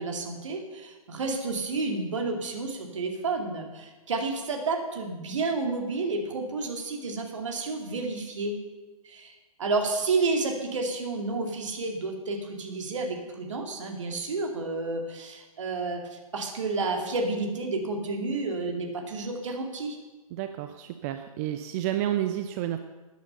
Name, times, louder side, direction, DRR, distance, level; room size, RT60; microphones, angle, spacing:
voice 1, 0.0-8.6 9.0-20.0, right 3 dB, 55° right, 3 dB, 2.3 m, -30 dB
voice 2, 20.3-22.8, right 12 dB, 25° right, 8 dB, 0.5 m, -30 dB
14.0 x 9.3 x 5.5 m, 1.2 s
figure-of-eight pair, 120°, 18 cm